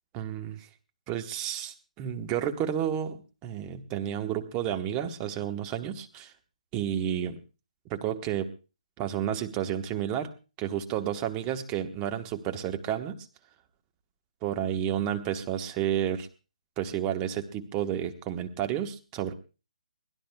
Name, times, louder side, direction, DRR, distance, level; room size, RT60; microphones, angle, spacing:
voice 1, 0.1-0.7 1.1-6.3 6.7-7.3 7.9-8.5 9.0-10.3 10.6-13.3 14.4-16.3 16.8-19.3, right 10 dB, 20° right, 6 dB, 1.2 m, -31 dB
23.0 x 16.5 x 2.3 m, 0.32 s
figure-of-eight pair, 150°, 4 cm